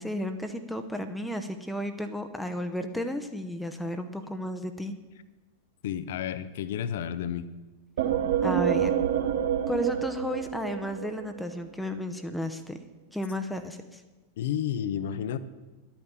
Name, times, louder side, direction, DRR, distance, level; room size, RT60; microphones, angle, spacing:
voice 1, 0.0-4.9 8.4-8.9 9.7-12.8 13.1-14.0, left 1 dB, 5° left, 7 dB, 0.8 m, -33 dB
voice 2, 5.8-7.5 14.4-15.4, left 9 dB, 55° left, 15 dB, 0.7 m, -31 dB
sound 1, 8.0-11.6, right 9 dB, 60° right, 0.9 m, -27 dB
11.5 x 8.8 x 7.0 m, 1.2 s
figure-of-eight pair, 90°, 0 cm